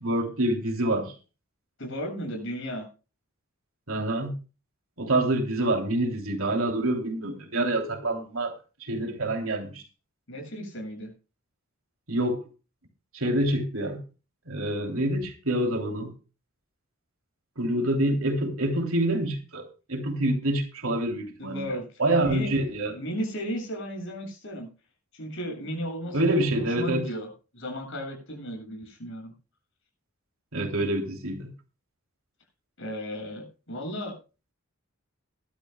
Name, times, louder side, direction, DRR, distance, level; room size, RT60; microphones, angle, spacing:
voice 1, 0.0-1.1 3.9-4.4 5.0-9.8 12.1-12.4 13.1-14.0 14.5-16.1 17.6-19.6 19.9-21.6 22.0-23.0 26.1-27.0 30.5-31.5, right 1 dB, 75° right, 3.4 m, -26 dB
voice 2, 1.8-2.9 10.3-11.1 21.4-21.8 22.2-22.5 22.9-24.7 25.1-27.3 27.5-29.3 32.8-34.2, equal, 60° left, 7.4 m, -35 dB
21.0 x 12.5 x 2.4 m
head